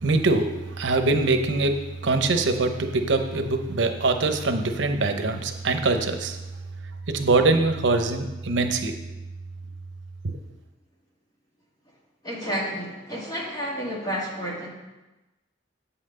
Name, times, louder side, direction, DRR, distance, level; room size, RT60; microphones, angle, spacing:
voice 1, 0.0-6.4 7.1-9.0 10.2-10.3, right 3 dB, 80° right, 6 dB, 0.8 m, -23 dB
voice 2, 12.2-14.7, equal, 20° left, -4 dB, 2.2 m, -30 dB
8.2 x 5.8 x 6.6 m, 1.1 s
head